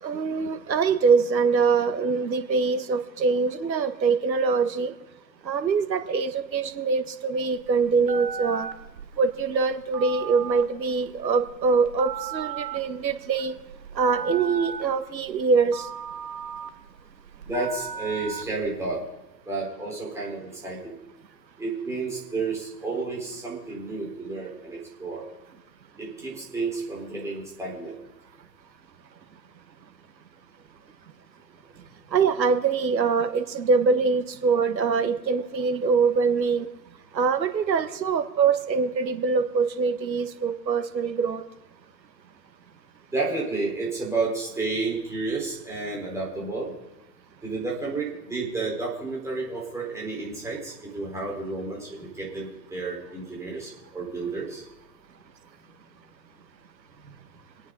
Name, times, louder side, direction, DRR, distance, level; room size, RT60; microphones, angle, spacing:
voice 1, 0.0-4.9 5.4-8.7 9.2-13.6 13.9-15.9 32.1-36.7 37.1-41.4, right 5 dB, 90° right, 9 dB, 1.6 m, -24 dB
Telephone, 7.5-19.0, right 7 dB, 75° right, 1.7 m, -37 dB
voice 2, 17.4-19.0 19.5-21.0 21.6-25.2 26.0-27.9 43.1-46.7 47.4-54.7 57.0-57.1, right 3 dB, 5° right, -4 dB, 4.2 m, -31 dB
26.5 x 9.1 x 3.9 m, 1.1 s
hypercardioid pair, 140°, 50 cm